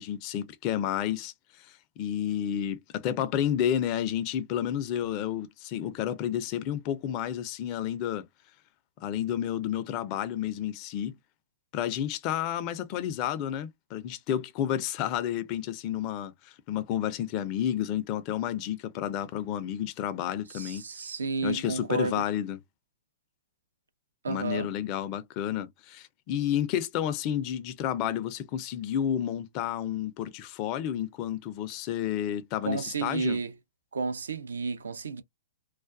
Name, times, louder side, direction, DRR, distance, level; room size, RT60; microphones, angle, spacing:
voice 1, 0.0-8.3 9.0-11.2 11.7-20.8 21.4-22.6 24.3-33.4, left 10 dB, 40° left, 0.5 m, -31 dB
voice 2, 20.5-22.2 24.2-24.7 32.6-33.5 33.9-35.2, right 4 dB, 80° right, 0.5 m, -31 dB
2.4 x 2.2 x 2.4 m
hypercardioid pair, 115°, 0 cm